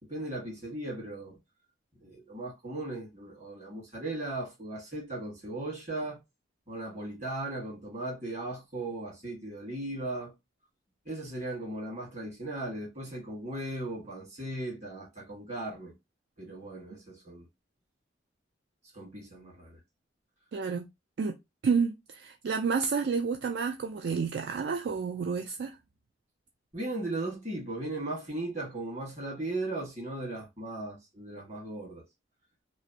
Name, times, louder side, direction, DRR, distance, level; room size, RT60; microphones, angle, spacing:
voice 1, 0.0-1.4 2.0-6.2 6.7-10.3 11.0-15.9 16.4-17.5 18.9-19.8 26.7-32.0, right 2 dB, 35° right, 1.5 m, -37 dB
voice 2, 20.5-20.9 21.2-21.4 21.6-25.8, right 5 dB, 60° right, 0.3 m, -30 dB
3.1 x 2.5 x 2.7 m
head